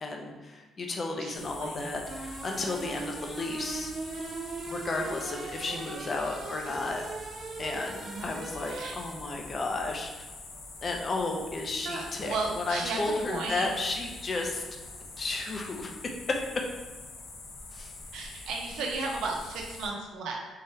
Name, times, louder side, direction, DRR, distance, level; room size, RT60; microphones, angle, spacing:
voice 1, 0.0-3.9 4.7-7.0 7.6-10.1 10.8-14.6 15.2-16.4 17.7-17.9, left 3 dB, 40° left, 2 dB, 0.6 m, -33 dB
voice 2, 1.2-1.9 5.7-6.1 8.0-8.3 8.7-9.0 11.8-13.0 13.3-14.0 18.1-20.5, right 3 dB, 85° right, 0 dB, 0.8 m, -35 dB
sound 1, 1.3-19.9, left 3 dB, 65° left, 0.9 m, -45 dB
sound 2, 2.1-9.5, right 3 dB, 50° right, 0.4 m, -40 dB
3.8 x 3.2 x 4.3 m, 1.2 s
cardioid pair, 90°, 0 cm